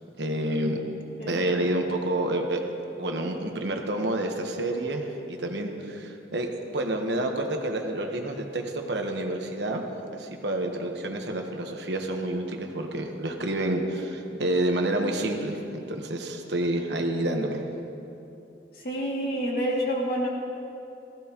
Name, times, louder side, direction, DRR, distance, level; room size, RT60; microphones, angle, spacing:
voice 1, 0.2-0.8 1.3-2.6 3.0-9.8 10.1-17.6, right 1 dB, 70° right, 3 dB, 1.2 m, -29 dB
voice 2, 18.7-20.3, equal, 55° left, -3 dB, 2.4 m, -28 dB
18.0 x 14.5 x 3.0 m, 2.9 s
head